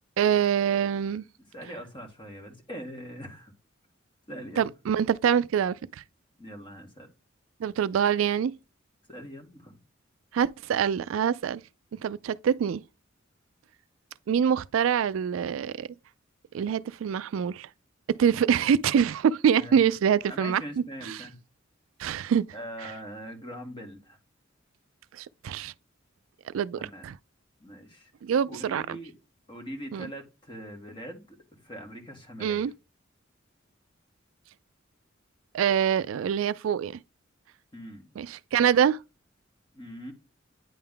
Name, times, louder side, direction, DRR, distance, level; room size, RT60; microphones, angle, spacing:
voice 1, 0.2-1.2 4.6-5.8 7.6-8.5 10.3-11.6 12.0-12.8 14.3-15.9 16.5-17.7 18.2-20.6 21.1-21.2 22.0-22.4 25.1-25.7 26.5-27.1 28.2-28.8 29.9-30.1 32.4-32.7 35.5-37.0 38.2-39.0, right 8 dB, 85° right, 0.3 m, -25 dB
voice 2, 1.5-3.5 4.3-4.7 6.4-7.1 9.1-9.8 19.6-19.8 20.3-21.4 22.5-24.2 26.8-27.1 27.6-28.1 28.5-29.1 29.5-32.7 37.7-38.1 39.7-40.1, equal, 25° left, 1.7 m, -42 dB
9.3 x 3.4 x 3.6 m
head